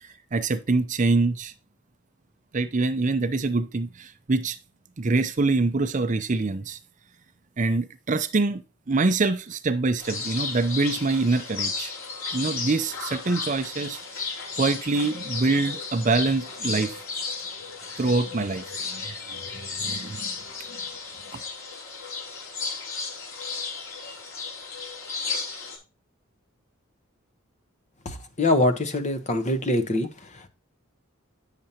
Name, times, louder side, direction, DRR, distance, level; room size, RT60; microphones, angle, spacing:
voice 1, 0.0-1.5 2.5-4.6 5.0-6.8 7.6-8.6 8.9-11.9 12.3-14.3 14.6-17.0 18.0-20.3 20.7-20.8 21.3-21.4, right 3 dB, 35° right, 0.6 m, -25 dB
sound 1, 10.0-25.8, left 4 dB, 85° left, 2.9 m, -34 dB
voice 2, 28.0-30.5, left 1 dB, 35° left, 1.0 m, -24 dB
8.7 x 6.8 x 2.8 m
head